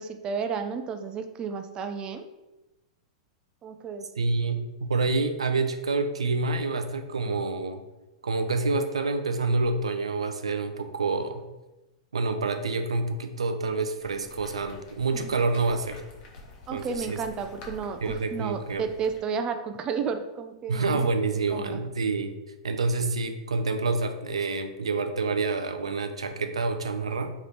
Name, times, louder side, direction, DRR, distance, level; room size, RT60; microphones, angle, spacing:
voice 1, 0.0-2.2 3.6-4.1 15.1-15.3 16.7-21.1 21.5-21.8, right 6 dB, 30° right, 7 dB, 0.4 m, -32 dB
voice 2, 4.2-7.8 8.2-11.5 12.1-16.0 16.7-17.2 18.0-18.8 20.7-22.3 22.6-27.3, right 3 dB, 85° right, 7 dB, 0.4 m, -27 dB
sound 1, 14.0-19.2, left 2 dB, 50° left, 1.0 m, -47 dB
3.3 x 3.0 x 3.9 m, 1.0 s
hypercardioid pair, 110°, 3 cm